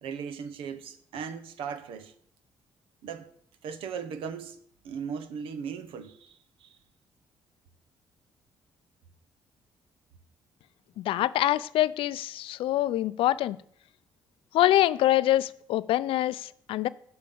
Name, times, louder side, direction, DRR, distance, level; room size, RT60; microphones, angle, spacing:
voice 1, 0.0-2.1 3.0-3.3 3.6-4.6 4.8-6.8, right 6 dB, 80° right, 0.9 m, -38 dB
voice 2, 11.0-13.6 14.5-16.9, left 14 dB, 80° left, 0.4 m, -25 dB
7.6 x 5.9 x 6.9 m
cardioid pair, 75°, 9 cm